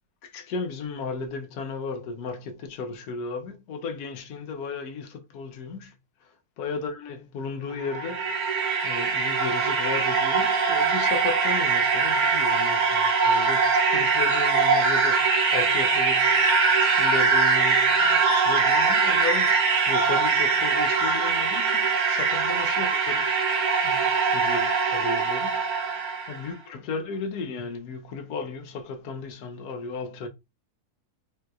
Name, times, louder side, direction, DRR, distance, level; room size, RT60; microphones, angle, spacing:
voice 1, 0.2-6.0 6.2-8.5 8.8-23.3 23.5-30.3, left 4 dB, 80° left, 1.2 m, -35 dB
sound 1, 7.7-26.4, right 4 dB, 70° right, 1.2 m, -22 dB
3.8 x 2.8 x 2.3 m
omnidirectional pair, 1.7 m